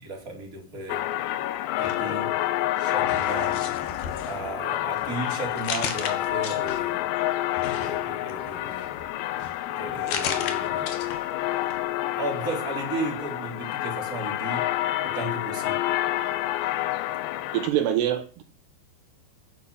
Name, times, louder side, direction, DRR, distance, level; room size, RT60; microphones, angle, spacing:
voice 1, 0.0-1.1 1.8-2.3 2.8-3.7 4.3-7.1 7.8-9.0 9.8-10.9 12.2-14.7 15.0-15.9, right 2 dB, 20° right, 3.7 m, -35 dB
sound 1, 0.9-17.7, left 14 dB, 85° left, 3.0 m, -28 dB
sound 2, 1.7-2.6 3.0-7.1 7.6-11.4 11.7-11.8, left 7 dB, 65° left, 3.3 m, -36 dB
voice 2, 17.5-18.4, right 11 dB, 75° right, 3.0 m, -24 dB
9.8 x 9.4 x 7.0 m
omnidirectional pair, 5.0 m